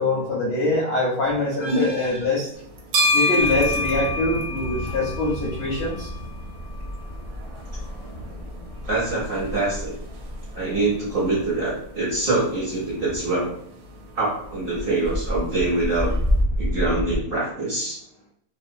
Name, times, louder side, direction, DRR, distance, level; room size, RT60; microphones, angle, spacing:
voice 1, 0.0-2.5 3.1-6.1, left 2 dB, 60° left, -5 dB, 0.7 m, -24 dB
sound 1, 2.5-16.4, left 1 dB, 75° right, 1.0 m, -31 dB
sound 2, 3.4-12.2 14.4-17.2, equal, 5° right, 0.6 m, -30 dB
voice 2, 8.9-9.9 10.5-13.5 14.2-16.1 16.6-18.0, right 2 dB, 45° right, -6 dB, 0.8 m, -24 dB
2.5 x 2.0 x 2.5 m, 0.69 s
omnidirectional pair, 1.6 m